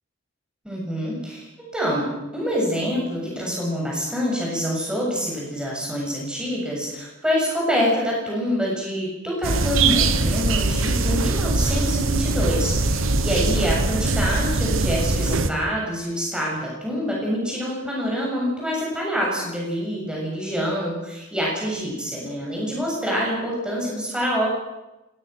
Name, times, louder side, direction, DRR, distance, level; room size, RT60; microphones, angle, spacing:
voice 1, 0.6-1.5 1.7-24.5, equal, 5° right, -4 dB, 7.3 m, -26 dB
sound 1, 9.4-15.5, right 3 dB, 70° right, 1.4 m, -22 dB
25.5 x 19.0 x 6.2 m, 1.0 s
head